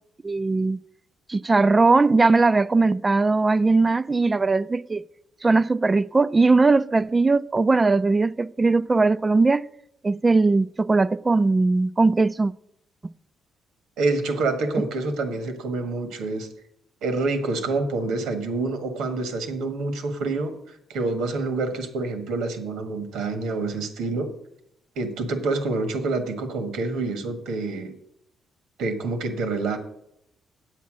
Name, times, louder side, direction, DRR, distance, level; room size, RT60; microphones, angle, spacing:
voice 1, 0.2-0.8 1.3-5.0 5.4-9.7 10.0-12.5, right 3 dB, 25° right, 0.3 m, -19 dB
voice 2, 14.0-16.5 17.0-24.3 24.9-28.0 28.8-29.8, right 3 dB, 85° right, 1.5 m, -27 dB
8.3 x 8.1 x 6.2 m
cardioid pair, 90°, 0 cm